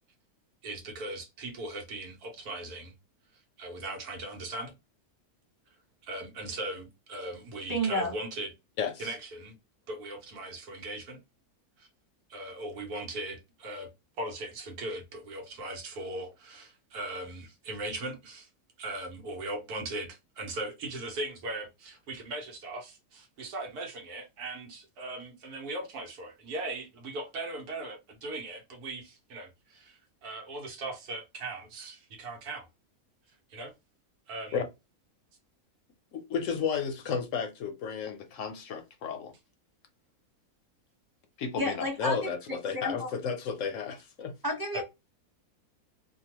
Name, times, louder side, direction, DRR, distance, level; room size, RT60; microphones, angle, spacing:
voice 1, 0.6-2.9 3.6-4.7 6.0-8.5 9.0-9.5 9.9-11.2 11.8-11.9 12.3-13.9 14.2-18.5 18.8-32.7 33.5-33.7 34.3-34.6 44.7-44.8, right 2 dB, 85° right, 1.4 m, -39 dB
voice 2, 7.7-8.1 41.6-43.1 44.4-44.8, equal, 20° right, 0.7 m, -31 dB
voice 3, 8.8-9.1 34.5-34.6 36.1-39.3 41.4-44.3, left 6 dB, 65° left, 0.9 m, -33 dB
2.9 x 2.2 x 2.9 m
omnidirectional pair, 1.6 m